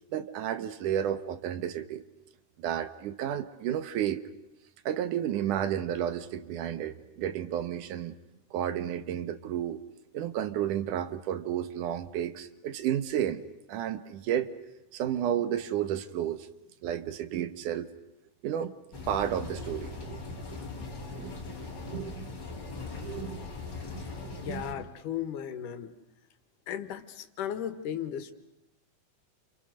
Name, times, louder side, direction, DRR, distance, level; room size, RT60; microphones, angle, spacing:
voice 1, 0.1-2.0 2.6-4.2 4.9-8.1 8.5-9.8 10.1-13.4 13.7-14.5 14.9-16.5 16.8-17.9 18.4-18.7 19.1-20.2 21.1-21.3 21.9-22.3 23.0-23.4 24.5-24.7, right 10 dB, 80° right, 12 dB, 2.7 m, -32 dB
sound 1, 18.9-24.7, left 3 dB, 35° left, 4.1 m, -40 dB
voice 2, 24.4-25.9 26.7-28.3, left 9 dB, 85° left, 10 dB, 3.0 m, -36 dB
30.0 x 27.5 x 6.5 m, 0.90 s
omnidirectional pair, 3.6 m